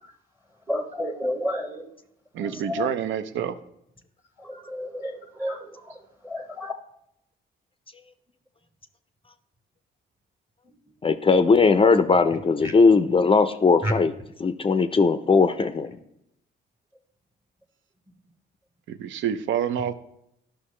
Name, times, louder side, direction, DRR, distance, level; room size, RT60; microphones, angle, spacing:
voice 1, 0.7-1.9 2.4-2.9 4.4-6.7 10.6-10.8 12.6-12.7 13.8-13.9, left 1 dB, 10° right, 5 dB, 0.9 m, -31 dB
voice 2, 2.3-3.5 18.9-19.9, right 9 dB, 75° right, 12 dB, 0.6 m, -27 dB
voice 3, 11.0-14.1 14.4-16.0, left 4 dB, 25° left, 10 dB, 0.4 m, -19 dB
11.5 x 5.7 x 3.2 m, 0.79 s
cardioid pair, 90°, 20 cm